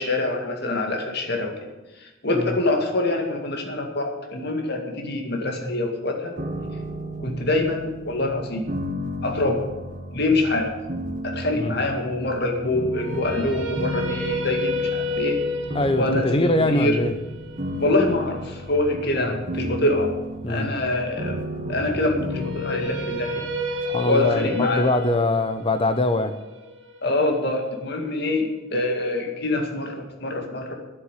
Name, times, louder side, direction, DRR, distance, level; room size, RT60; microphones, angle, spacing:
voice 1, 0.0-1.6 2.0-6.3 7.2-8.6 9.2-9.6 10.1-10.7 11.2-15.4 16.0-17.0 17.8-20.1 20.5-21.4 21.7-23.3 24.0-24.9 27.0-30.7, left 2 dB, 55° left, 3 dB, 2.1 m, -25 dB
sound 1, 6.4-25.3, equal, 40° right, 1.5 m, -34 dB
sound 2, 12.9-19.0 22.3-28.4, left 2 dB, 75° right, 1.7 m, -31 dB
voice 2, 15.7-17.2 19.2-19.4 20.4-20.7 23.8-26.4, left 2 dB, 30° left, 10 dB, 0.8 m, -23 dB
10.0 x 8.3 x 9.9 m, 1.1 s
head